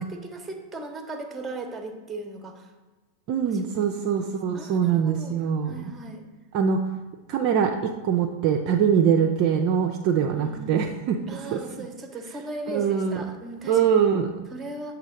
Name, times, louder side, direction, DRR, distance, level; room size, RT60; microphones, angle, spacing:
voice 1, 0.0-2.7 3.5-5.4 5.7-6.2 10.3-10.7 11.3-13.8 14.5-15.0, right 2 dB, 15° right, 5 dB, 0.8 m, -38 dB
voice 2, 3.3-5.9 6.5-6.8 7.3-11.2 11.5-11.9 12.7-13.2 13.7-14.3, right 7 dB, 40° right, 4 dB, 0.4 m, -23 dB
7.2 x 2.8 x 5.1 m, 1.2 s
figure-of-eight pair, 90°, 0 cm